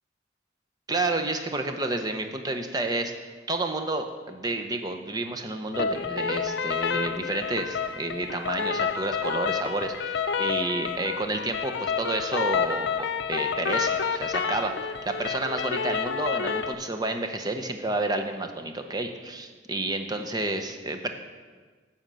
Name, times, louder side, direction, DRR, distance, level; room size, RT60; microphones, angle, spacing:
voice 1, 0.9-14.7 15.0-21.1, right 2 dB, 20° right, 6 dB, 0.7 m, -30 dB
sound 1, 5.7-16.7, left 6 dB, 75° left, 0.5 m, -29 dB
10.5 x 4.4 x 7.4 m, 1.5 s
head